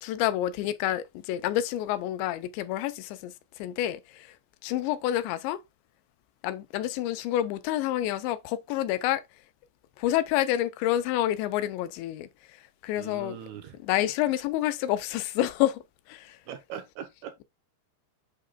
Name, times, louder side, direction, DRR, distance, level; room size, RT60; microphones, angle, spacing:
voice 1, 0.0-4.3 4.6-5.6 6.4-9.2 10.0-12.3 12.8-13.4 13.8-15.8 16.1-16.4, left 13 dB, 85° left, 2.9 m, -28 dB
voice 2, 12.9-13.8 16.5-17.4, right 9 dB, 75° right, 2.6 m, -41 dB
8.6 x 6.5 x 2.3 m
omnidirectional pair, 5.1 m